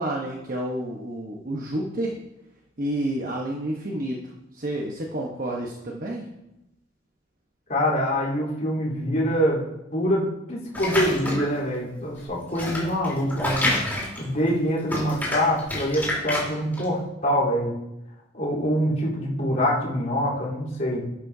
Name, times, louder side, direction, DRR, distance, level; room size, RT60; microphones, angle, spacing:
voice 1, 0.0-2.1 2.8-4.2 4.5-6.2, right 1 dB, 45° right, -1 dB, 1.1 m, -29 dB
voice 2, 7.7-9.6 9.9-13.7 14.2-17.7 18.3-21.1, equal, 45° left, -7 dB, 3.8 m, -25 dB
sound 1, 10.7-11.6 12.2-14.6 14.8-16.8, left 1 dB, 10° left, 3.7 m, -27 dB
11.5 x 10.5 x 2.8 m, 0.92 s
head